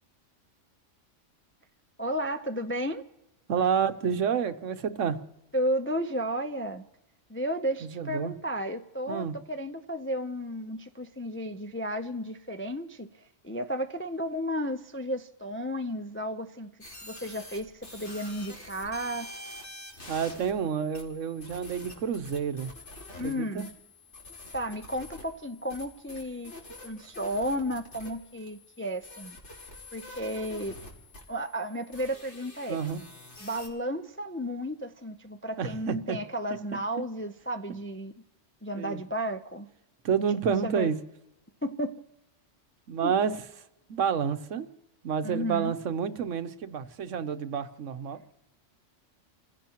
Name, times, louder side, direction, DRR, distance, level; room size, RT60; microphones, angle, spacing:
voice 1, 2.0-3.1 5.5-6.8 7.3-19.3 23.1-23.7 24.5-26.5 26.8-29.4 29.9-30.8 31.3-32.8 33.4-38.1 38.6-39.7 40.5-40.9 41.6-42.0 43.0-43.1 45.2-45.7, equal, 20° left, 7 dB, 0.4 m, -33 dB
voice 2, 3.5-5.2 7.8-8.3 9.1-9.3 20.1-22.7 23.2-23.7 32.7-33.0 35.6-36.2 38.8-39.0 40.0-41.0 42.9-43.4 43.9-44.7 45.0-48.2, right 7 dB, 80° right, 10 dB, 1.2 m, -29 dB
sound 1, 16.8-33.7, left 2 dB, 65° left, 2.9 m, -47 dB
30.0 x 16.0 x 3.0 m, 0.91 s
omnidirectional pair, 1.3 m